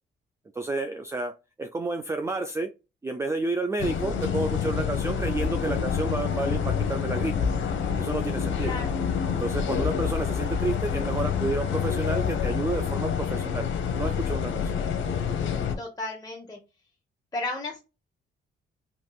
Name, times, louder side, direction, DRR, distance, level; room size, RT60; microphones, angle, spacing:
voice 1, 0.5-2.7 3.0-7.3 8.0-8.8 9.3-13.7 13.9-14.8, right 3 dB, 15° right, 6 dB, 0.4 m, -30 dB
sound 1, 3.8-15.7, left 7 dB, 75° left, 0.8 m, -27 dB
voice 2, 8.6-8.9 15.8-16.6 17.3-17.8, left 2 dB, 20° left, -1 dB, 0.9 m, -33 dB
4.4 x 2.9 x 2.3 m, 0.28 s
cardioid pair, 90°, 20 cm